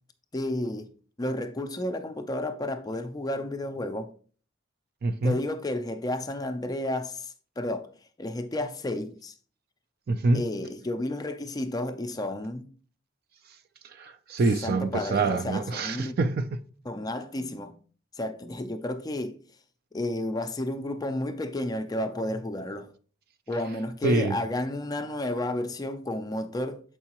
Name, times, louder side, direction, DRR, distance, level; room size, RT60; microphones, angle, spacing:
voice 1, 0.3-0.9 1.2-4.1 5.2-7.9 8.2-9.3 10.3-12.7 14.6-16.2 16.9-17.8 18.2-19.3 19.9-22.9 23.5-26.8, left 1 dB, 20° left, 0.4 m, -31 dB
voice 2, 5.0-5.4 10.1-10.4 13.9-16.6 24.0-24.4, right 3 dB, 50° right, 0.4 m, -26 dB
6.9 x 4.7 x 2.9 m
head